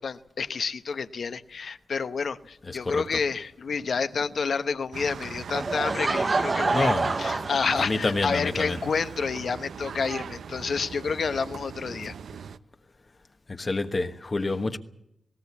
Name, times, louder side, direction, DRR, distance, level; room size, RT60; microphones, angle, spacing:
voice 1, 0.0-6.9 7.2-12.1, left 5 dB, 60° left, 1.0 m, -29 dB
voice 2, 2.6-3.2 6.7-7.3 7.8-8.8 13.5-14.8, left 3 dB, 30° left, 1.2 m, -28 dB
sound 1, 4.9-12.6, right 6 dB, 80° right, 0.7 m, -40 dB
Laughter / Crowd, 5.5-8.4, right 3 dB, 35° right, 0.7 m, -27 dB
19.0 x 18.0 x 8.5 m
wide cardioid pair, 110°, 0 cm